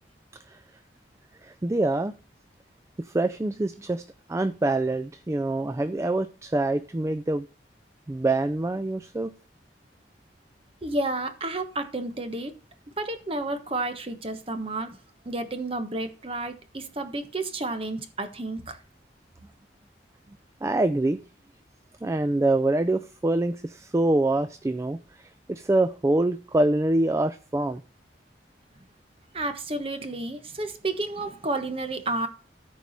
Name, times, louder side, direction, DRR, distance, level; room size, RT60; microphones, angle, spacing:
voice 1, 1.4-2.1 3.0-4.0 4.3-7.5 8.1-9.3 20.6-21.2 22.0-27.8, right 2 dB, 15° right, 11 dB, 0.3 m, -25 dB
voice 2, 10.8-12.5 13.0-15.0 15.2-18.8 29.3-32.3, right 2 dB, 30° right, 8 dB, 1.1 m, -31 dB
13.5 x 4.7 x 4.1 m, 0.38 s
head